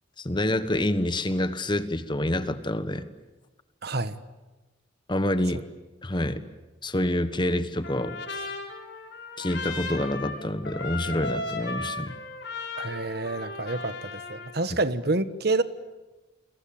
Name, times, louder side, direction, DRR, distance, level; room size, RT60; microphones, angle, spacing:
voice 1, 0.2-3.0 5.1-5.6 6.0-6.4 6.8-8.2 9.4-12.2, left 1 dB, 25° left, 11 dB, 1.3 m, -27 dB
voice 2, 3.8-4.2 12.8-15.6, right 2 dB, 55° right, 13 dB, 1.3 m, -28 dB
Trumpet, 7.8-14.6, left 3 dB, 60° left, 5.7 m, -36 dB
30.0 x 22.5 x 8.7 m, 1.1 s
head